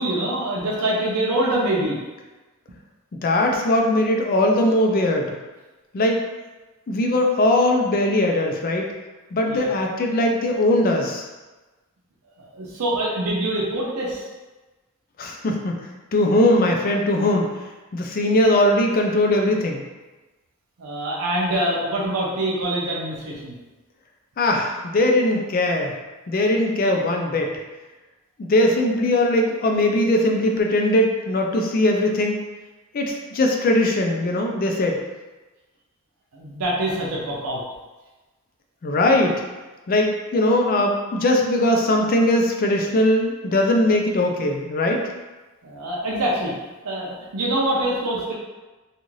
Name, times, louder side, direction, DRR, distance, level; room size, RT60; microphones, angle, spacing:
voice 1, 0.0-2.0 9.5-9.7 12.4-14.2 20.8-23.5 36.3-37.6 45.6-46.5 46.8-48.3, right 1 dB, 80° right, -4 dB, 0.6 m, -25 dB
voice 2, 3.2-5.4 5.9-6.2 6.9-8.9 9.3-11.2 15.2-15.8 16.1-17.5 17.9-19.8 24.4-25.9 26.3-27.5 28.4-32.4 32.9-35.0 38.8-39.4 39.9-45.0, left 1 dB, 40° left, 2 dB, 0.4 m, -20 dB
2.6 x 2.4 x 3.0 m, 1.2 s
head